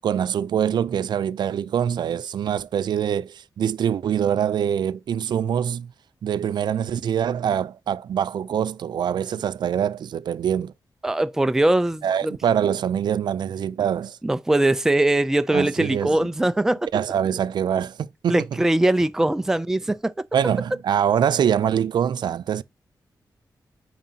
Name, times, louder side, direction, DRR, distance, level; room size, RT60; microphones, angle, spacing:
voice 1, 0.0-5.9 6.2-10.7 12.0-14.2 15.5-16.2 16.9-18.4 20.3-22.6, right 9 dB, 85° right, 0.4 m, -24 dB
voice 2, 11.0-12.4 14.2-16.9 18.3-20.1, right 1 dB, 5° right, 0.3 m, -21 dB
9.3 x 5.0 x 2.8 m
wide cardioid pair, 180°, 7 cm